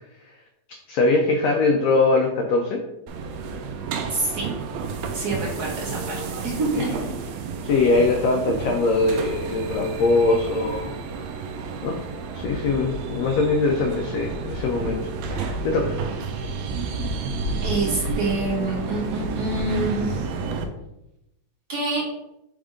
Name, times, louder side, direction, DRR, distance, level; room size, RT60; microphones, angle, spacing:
voice 1, 0.9-2.8 6.7-6.8 7.6-10.9 11.8-12.0 12.3-16.0, left 3 dB, 90° left, 2 dB, 1.4 m, -22 dB
sound 1, 3.1-20.6, right 4 dB, 80° right, 1.6 m, -30 dB
voice 2, 4.1-4.5 5.1-7.1 17.6-20.3 21.7-22.1, right 2 dB, 40° right, -4 dB, 1.7 m, -27 dB
5.3 x 3.6 x 5.0 m, 0.87 s
omnidirectional pair, 3.8 m